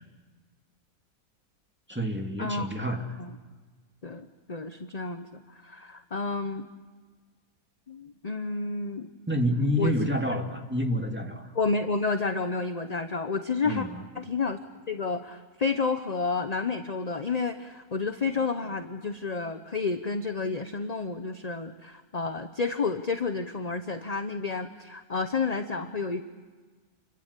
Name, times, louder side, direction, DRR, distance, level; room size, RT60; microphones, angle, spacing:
voice 1, 1.9-3.1 9.3-11.5 13.7-14.0, equal, 5° right, 3 dB, 2.3 m, -28 dB
voice 2, 4.0-6.7 7.9-9.1 9.8-9.9 10.3-10.4 11.5-13.9 14.1-14.6 14.9-26.2, left 4 dB, 30° left, 8 dB, 0.9 m, -30 dB
29.5 x 23.0 x 8.4 m, 1.4 s
omnidirectional pair, 1.6 m